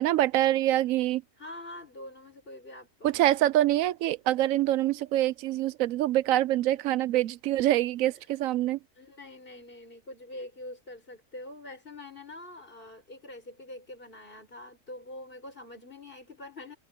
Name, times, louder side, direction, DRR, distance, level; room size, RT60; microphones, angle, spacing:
voice 1, 0.0-1.2 3.0-8.8, right 14 dB, 90° right, 1.0 m, -25 dB
voice 2, 1.4-3.2 9.0-16.8, left 1 dB, 45° left, 5.7 m, -45 dB
omnidirectional pair, 1.4 m